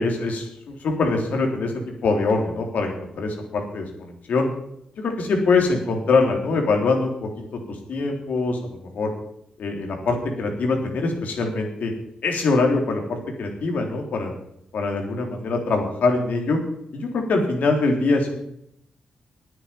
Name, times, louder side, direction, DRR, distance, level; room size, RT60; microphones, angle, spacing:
voice 1, 0.0-1.7 2.0-4.5 5.0-9.1 9.6-11.9 12.2-14.3 14.7-16.6 16.9-18.4, left 3 dB, 70° left, 2 dB, 3.7 m, -23 dB
10.5 x 9.5 x 9.1 m, 0.76 s
supercardioid pair, 45°, 3 cm